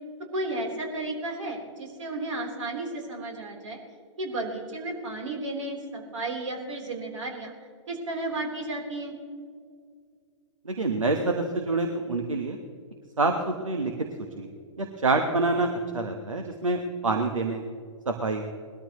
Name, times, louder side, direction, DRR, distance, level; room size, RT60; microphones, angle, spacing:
voice 1, 0.3-3.8 4.2-7.5 7.9-9.2, right 2 dB, 70° right, 1 dB, 3.7 m, -33 dB
voice 2, 10.6-12.6 13.2-13.9 14.4-14.5 14.8-15.7 15.9-17.6 18.1-18.4, right 3 dB, 90° right, 4 dB, 1.2 m, -26 dB
20.5 x 13.5 x 3.1 m, 2.1 s
hypercardioid pair, 115°, 16 cm